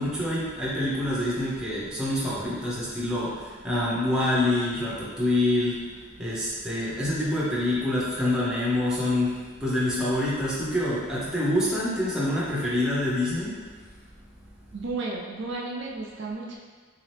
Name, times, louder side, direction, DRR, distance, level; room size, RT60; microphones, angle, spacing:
voice 1, 0.0-13.5, left 1 dB, 5° right, -7 dB, 0.7 m, -26 dB
voice 2, 14.7-16.6, right 3 dB, 55° right, -2 dB, 0.4 m, -33 dB
3.5 x 2.8 x 3.3 m, 1.5 s
head